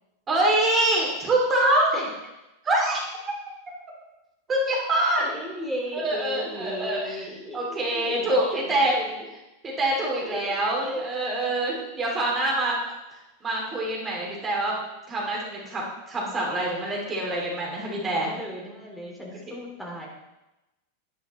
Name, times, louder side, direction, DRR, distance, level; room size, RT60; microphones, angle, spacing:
voice 1, 0.3-2.1 2.6-3.0 4.5-5.2 5.9-7.2 7.5-9.0 9.6-12.8 13.4-14.8 15.1-18.3, right 1 dB, 20° right, -2 dB, 2.6 m, -25 dB
voice 2, 5.2-9.3 10.2-11.2 11.7-11.8 18.0-20.1, equal, 5° left, -2 dB, 2.9 m, -36 dB
10.5 x 10.0 x 3.1 m, 0.97 s
figure-of-eight pair, 90°, 0 cm